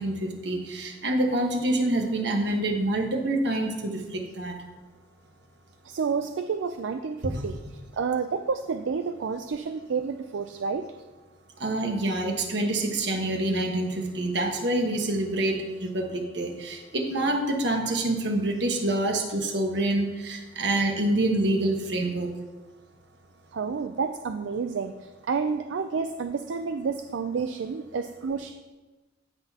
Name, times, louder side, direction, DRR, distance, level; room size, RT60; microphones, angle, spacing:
voice 1, 0.0-4.5 7.2-7.4 11.6-22.3, right 1 dB, 60° right, 2 dB, 1.3 m, -26 dB
voice 2, 5.8-10.9 23.5-28.5, right 5 dB, 80° right, 8 dB, 0.4 m, -30 dB
16.5 x 6.0 x 2.9 m, 1.2 s
head